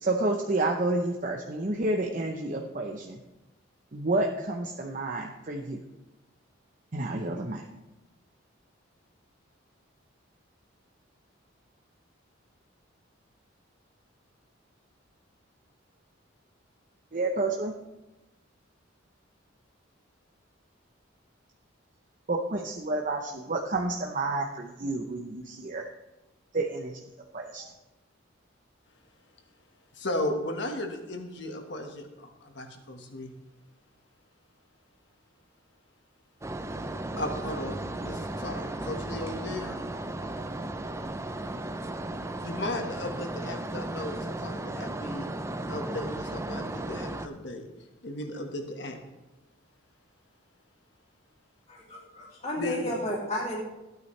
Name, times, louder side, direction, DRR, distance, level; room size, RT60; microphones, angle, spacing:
voice 1, 0.0-3.2 3.9-5.8 6.9-7.6 17.1-17.7 22.3-25.8 26.5-27.0 27.3-27.7, right 2 dB, 40° right, 1 dB, 0.8 m, -30 dB
voice 2, 29.9-33.3 37.2-39.8 42.4-45.3 45.7-47.7 48.0-49.0 52.6-53.0, left 1 dB, 60° left, 4 dB, 1.5 m, -35 dB
sound 1, 36.4-47.3, right 1 dB, 15° right, 0.5 m, -35 dB
voice 3, 51.7-53.6, left 1 dB, 35° left, -3 dB, 2.7 m, -33 dB
15.0 x 9.3 x 3.3 m, 1.0 s
head